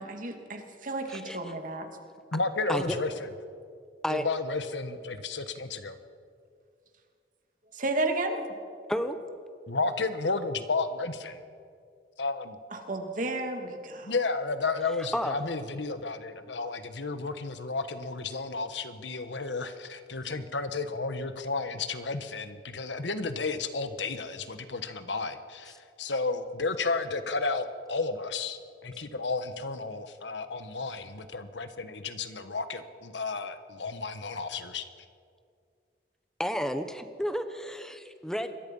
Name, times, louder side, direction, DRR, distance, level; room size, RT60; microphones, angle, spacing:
voice 1, 0.0-1.9 7.7-8.4 12.7-14.1, right 2 dB, 50° right, 4 dB, 2.5 m, -32 dB
voice 2, 1.1-1.5 2.7-3.0 4.0-4.2 8.9-9.2 15.1-15.4 36.4-38.5, equal, 5° left, 9 dB, 1.2 m, -31 dB
voice 3, 2.3-3.3 4.1-6.0 9.7-11.4 12.2-12.6 14.0-34.8, left 3 dB, 90° left, 10 dB, 1.3 m, -32 dB
27.0 x 22.0 x 5.5 m, 2.3 s
head